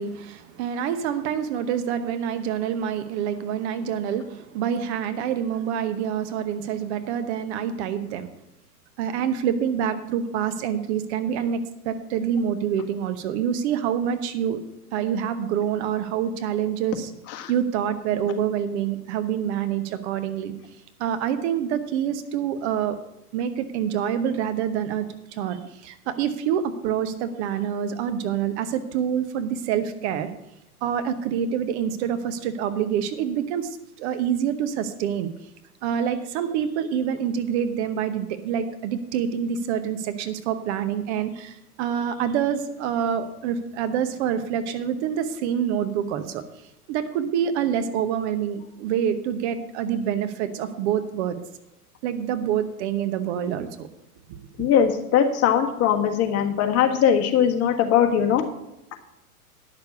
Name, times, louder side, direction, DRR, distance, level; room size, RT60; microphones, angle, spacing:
voice 1, 0.0-8.3 9.0-14.6 14.9-17.1 17.5-20.5 21.0-23.0 23.3-25.0 25.3-30.3 30.8-35.3 35.8-46.4 46.9-51.4 52.0-53.9 54.3-54.4, right 8 dB, 45° right, 10 dB, 1.0 m, -26 dB
voice 2, 54.6-58.4, left 8 dB, 30° left, 4 dB, 1.5 m, -20 dB
10.5 x 6.7 x 6.8 m, 0.88 s
hypercardioid pair, 105°, 47 cm